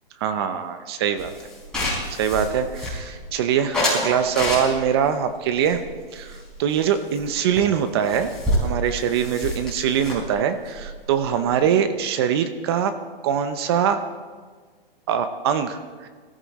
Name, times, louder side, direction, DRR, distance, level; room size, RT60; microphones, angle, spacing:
voice 1, 0.2-1.3 2.1-5.8 6.1-8.3 8.6-12.9 13.2-14.0 15.1-16.1, right 8 dB, 25° right, 10 dB, 0.7 m, -23 dB
sound 1, 1.2-3.3 3.7-5.0 5.6-6.9 7.1-7.3 7.6-7.7 7.9-11.7, left 1 dB, ahead, 4.4 m, -28 dB
20.5 x 14.0 x 4.1 m, 1.5 s
hypercardioid pair, 155°, 29 cm